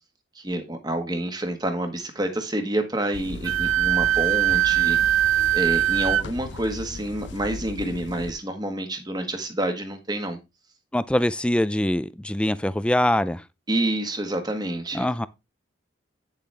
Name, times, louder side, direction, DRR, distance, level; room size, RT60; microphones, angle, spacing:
voice 1, 0.3-5.0 5.5-10.4 13.7-15.1, right 1 dB, 20° right, 1.5 m, -28 dB
sound 1, 3.1-8.3, left 3 dB, 60° left, 0.6 m, -37 dB
Wind instrument woodwind instrument, 3.4-6.2, right 12 dB, 90° right, 0.4 m, -21 dB
voice 2, 10.9-13.4 14.9-15.3, left 1 dB, 5° left, 0.4 m, -23 dB
9.5 x 7.1 x 3.4 m
head